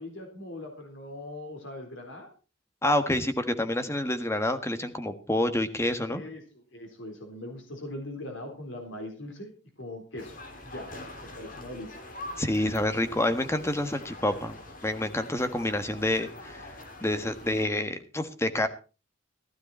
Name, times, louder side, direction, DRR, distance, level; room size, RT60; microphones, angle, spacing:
voice 1, 0.0-2.3 6.1-9.5 9.8-10.4 10.6-10.9 11.3-12.0, left 1 dB, 75° left, 3 dB, 4.0 m, -40 dB
voice 2, 2.8-6.2 12.4-16.7 17.0-18.7, left 1 dB, 15° left, 8 dB, 1.5 m, -28 dB
sound 1, 10.2-17.6, left 2 dB, 45° left, 3.1 m, -44 dB
15.5 x 13.0 x 4.3 m, 0.34 s
head